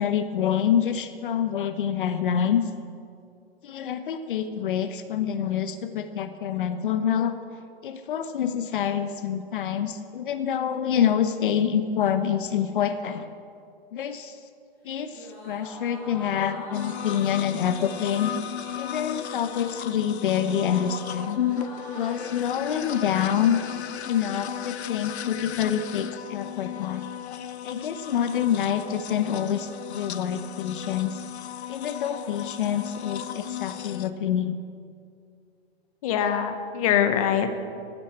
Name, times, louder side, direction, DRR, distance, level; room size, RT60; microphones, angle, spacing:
voice 1, 0.0-2.6 3.6-7.3 7.8-13.3 13.9-14.4 14.8-18.3 18.8-21.4 21.9-23.6 24.1-27.0 27.6-31.2 31.7-34.6, left 9 dB, 55° left, 9 dB, 1.0 m, -26 dB
sound 1, 15.1-24.8, left 1 dB, 5° left, 4.8 m, -45 dB
sound 2, 16.7-34.1, left 10 dB, 85° left, 0.9 m, -35 dB
voice 2, 36.0-37.6, left 8 dB, 35° left, 8 dB, 1.3 m, -23 dB
15.0 x 9.3 x 8.8 m, 2.4 s
hypercardioid pair, 165°, 32 cm